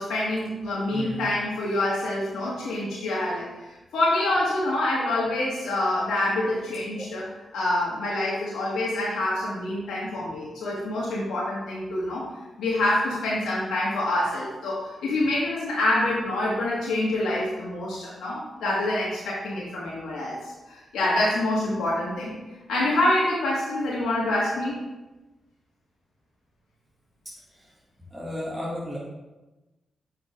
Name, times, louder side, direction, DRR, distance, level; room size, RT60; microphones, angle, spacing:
voice 1, 0.0-7.2 7.5-12.2 12.6-22.4 22.7-24.8, left 1 dB, 85° left, -6 dB, 1.3 m, -26 dB
voice 2, 0.9-1.3 27.2-27.7 28.1-29.0, equal, 15° right, -7 dB, 2.1 m, -34 dB
6.1 x 4.7 x 3.6 m, 1.1 s
supercardioid pair, 50°, 0 cm